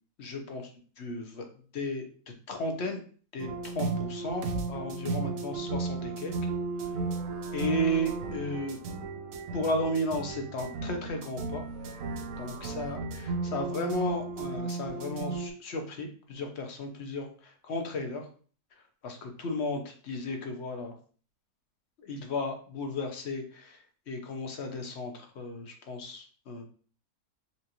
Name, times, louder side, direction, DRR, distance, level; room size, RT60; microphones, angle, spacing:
voice 1, 0.2-1.5 1.7-3.0 3.3-3.5 3.7-6.4 6.8-7.0 7.5-8.8 9.5-11.6 12.4-18.3 18.7-20.9 22.0-26.6, left 1 dB, 55° left, 4 dB, 0.9 m, -34 dB
sound 1, 3.4-15.5, right 4 dB, 70° right, 1.0 m, -35 dB
5.7 x 2.5 x 2.9 m, 0.42 s
omnidirectional pair, 1.6 m